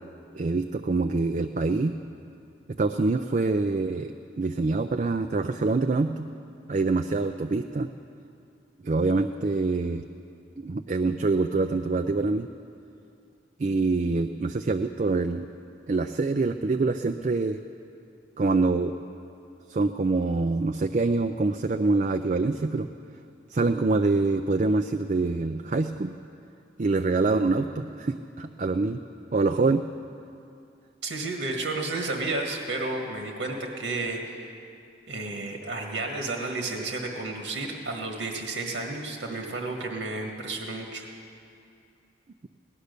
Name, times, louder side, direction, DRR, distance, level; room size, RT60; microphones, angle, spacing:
voice 1, 0.3-2.0 2.8-6.3 6.7-7.9 8.8-10.1 10.6-12.5 13.6-15.5 15.9-17.6 18.4-18.9 19.7-22.9 23.5-26.1 26.8-29.0 29.3-29.8, right 3 dB, 40° right, 7 dB, 0.4 m, -25 dB
voice 2, 31.0-34.5 35.1-41.1, right 2 dB, 85° right, 2 dB, 1.6 m, -32 dB
17.5 x 11.5 x 6.7 m, 2.6 s
head